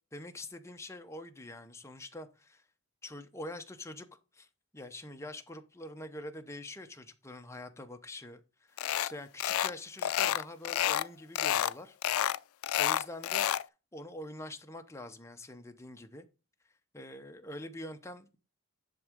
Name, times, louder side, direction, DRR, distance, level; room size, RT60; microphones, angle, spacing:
voice 1, 0.1-2.6 3.0-4.1 4.3-4.5 4.7-8.4 8.7-12.0 12.8-13.5 13.9-16.3 16.9-18.4, left 1 dB, 15° left, 0.8 m, -45 dB
sound 1, 8.8-9.1 9.4-9.7 10.0-11.1 11.3-11.7 12.0-13.6, left 11 dB, 80° left, 0.3 m, -29 dB
10.5 x 3.6 x 5.1 m
head